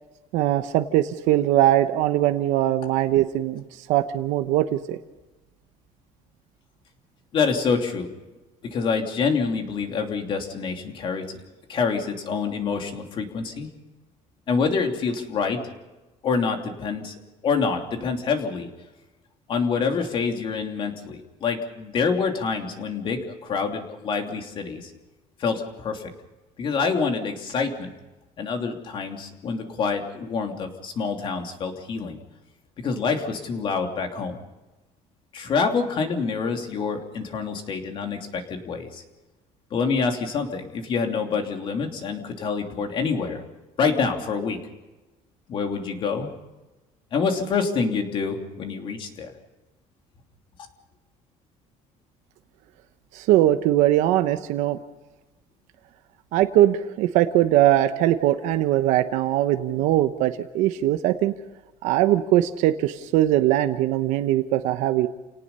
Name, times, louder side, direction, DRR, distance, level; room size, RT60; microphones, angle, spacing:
voice 1, 0.3-5.0 53.1-54.8 56.3-61.3 61.8-65.1, right 13 dB, 80° right, 9 dB, 1.0 m, -21 dB
voice 2, 7.3-8.1 8.6-11.4 11.7-13.7 14.5-15.7 16.2-17.1 17.4-18.7 19.5-24.9 25.4-26.1 26.6-27.9 28.4-32.2 32.8-34.4 35.3-39.0 39.7-43.4 43.8-44.6 45.5-46.3 47.1-49.3, left 5 dB, 45° left, 4 dB, 3.0 m, -26 dB
29.5 x 18.5 x 5.6 m, 1.1 s
cardioid pair, 150°, 13 cm